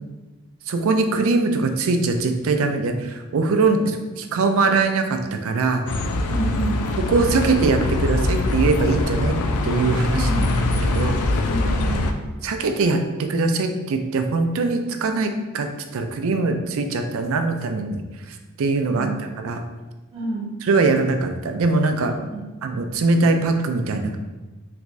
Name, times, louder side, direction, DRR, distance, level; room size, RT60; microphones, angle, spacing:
voice 1, 0.7-5.8 7.0-9.4 9.6-10.3 10.9-11.2 12.4-15.7 15.9-18.0 18.3-19.1 19.4-19.6 20.6-22.1 22.6-24.2, right 3 dB, 70° right, 6 dB, 0.4 m, -22 dB
Bus, 5.9-12.1, left 2 dB, 80° left, 0.4 m, -22 dB
voice 2, 6.3-6.8 10.2-10.5 11.4-12.1 18.9-19.2 20.1-20.5 22.3-22.4, right 2 dB, 25° right, -5 dB, 1.0 m, -29 dB
3.4 x 3.1 x 2.5 m, 1.2 s
head